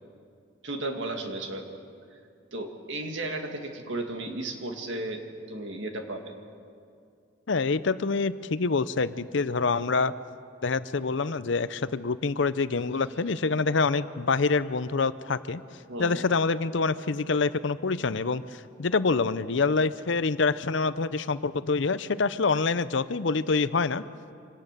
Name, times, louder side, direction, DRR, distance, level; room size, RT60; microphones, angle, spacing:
voice 1, 0.6-1.7 2.1-2.2 2.5-6.3 15.9-16.3, right 2 dB, 65° right, 4 dB, 2.2 m, -34 dB
voice 2, 7.5-10.1 10.6-15.6 16.0-24.0, left 4 dB, 65° left, 14 dB, 0.6 m, -26 dB
25.5 x 18.0 x 6.7 m, 2.4 s
head